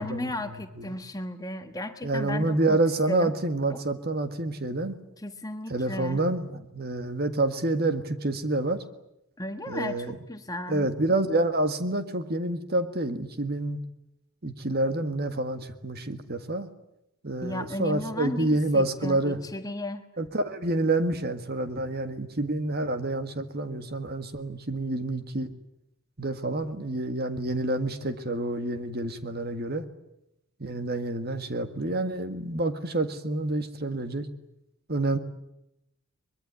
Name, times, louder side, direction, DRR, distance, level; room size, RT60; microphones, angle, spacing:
voice 1, 0.0-2.8 3.1-3.3 3.7-3.8 5.2-6.2 9.4-10.9 17.4-20.1, left 1 dB, 15° left, 7 dB, 1.4 m, -35 dB
voice 2, 2.0-5.0 5.7-8.8 9.7-10.2 10.7-13.8 14.4-16.7 17.2-19.4 20.2-25.5 26.2-29.9 30.6-34.3 34.9-35.2, right 2 dB, 45° right, 9 dB, 1.7 m, -28 dB
23.5 x 22.0 x 9.6 m, 0.82 s
head